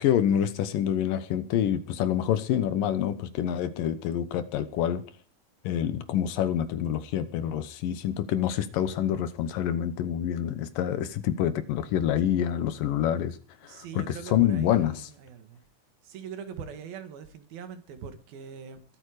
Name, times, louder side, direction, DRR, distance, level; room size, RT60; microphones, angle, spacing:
voice 1, 0.0-5.0 5.6-13.4 13.7-15.0, left 10 dB, 70° left, 13 dB, 2.6 m, -27 dB
voice 2, 13.6-15.6 16.0-18.8, right 7 dB, 70° right, 9 dB, 3.5 m, -42 dB
22.5 x 8.5 x 4.9 m, 0.39 s
omnidirectional pair, 4.4 m